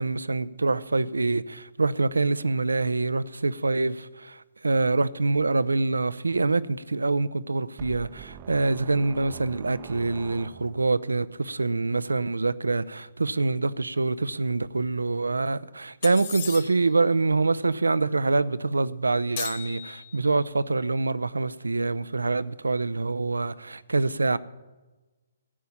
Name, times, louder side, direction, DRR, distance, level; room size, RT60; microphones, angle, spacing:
voice 1, 0.0-24.4, right 3 dB, 80° right, 0.5 m, -25 dB
sound 1, 7.8-11.0, right 11 dB, 30° right, 0.7 m, -44 dB
sound 2, 16.0-17.0 19.4-20.4, left 8 dB, 45° left, 1.2 m, -37 dB
14.5 x 5.6 x 8.5 m
figure-of-eight pair, 135°, 0 cm